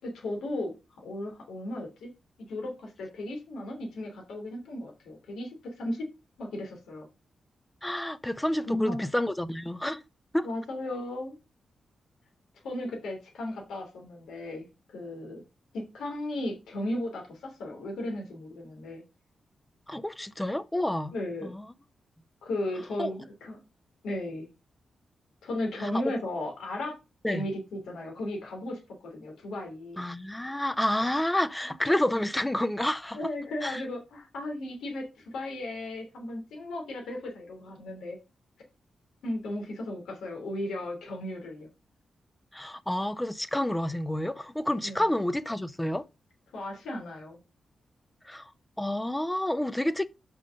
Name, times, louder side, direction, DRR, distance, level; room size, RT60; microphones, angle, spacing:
voice 1, 0.0-2.1 2.5-6.1 6.4-7.1 8.7-9.1 10.4-11.3 12.6-15.4 15.7-19.0 21.1-21.6 22.4-23.6 24.0-24.5 25.4-26.9 27.3-30.0 31.6-31.7 33.1-38.2 39.2-41.7 44.8-45.0 46.5-47.4, left 1 dB, 90° left, 2.9 m, -35 dB
voice 2, 7.8-10.0 10.3-10.5 19.9-21.1 21.4-21.6 23.0-23.1 25.8-26.1 27.2-27.5 30.0-33.3 33.6-33.8 42.5-46.0 48.2-48.5 48.8-50.1, left 1 dB, 10° left, 0.6 m, -29 dB
5.8 x 5.1 x 6.3 m
cardioid pair, 70°, 0 cm